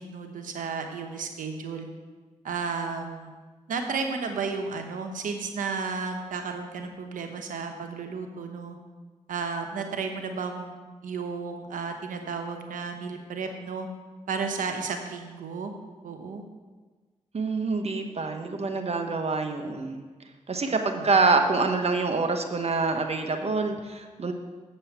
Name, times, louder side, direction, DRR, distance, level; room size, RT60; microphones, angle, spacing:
voice 1, 0.0-1.9 2.4-3.3 3.7-8.8 9.3-10.7 11.0-13.9 14.3-15.7 16.0-16.4 21.0-21.4, right 5 dB, 90° right, 5 dB, 1.0 m, -33 dB
voice 2, 17.3-20.0 20.5-24.3, right 3 dB, 50° right, 5 dB, 1.2 m, -26 dB
8.0 x 5.5 x 7.5 m, 1.4 s
cardioid pair, 50°, 13 cm